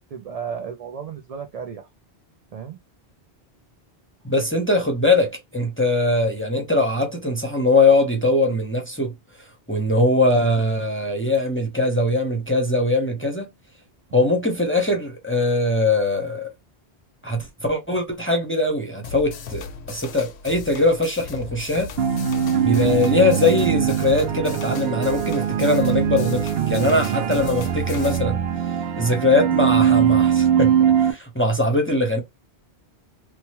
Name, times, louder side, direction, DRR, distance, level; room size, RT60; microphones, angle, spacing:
voice 1, 0.1-1.9 2.5-2.8, right 7 dB, 50° right, 0.4 m, -33 dB
voice 2, 4.2-9.1 9.7-13.5 14.1-16.5 17.2-21.9 22.6-28.4 28.7-30.7 31.0-32.2, left 2 dB, 15° left, 0.6 m, -21 dB
sound 1, 19.0-28.2, left 6 dB, 80° left, 0.9 m, -37 dB
sound 2, 22.0-31.1, right 9 dB, 70° right, 0.8 m, -21 dB
3.1 x 2.2 x 2.8 m
omnidirectional pair, 1.1 m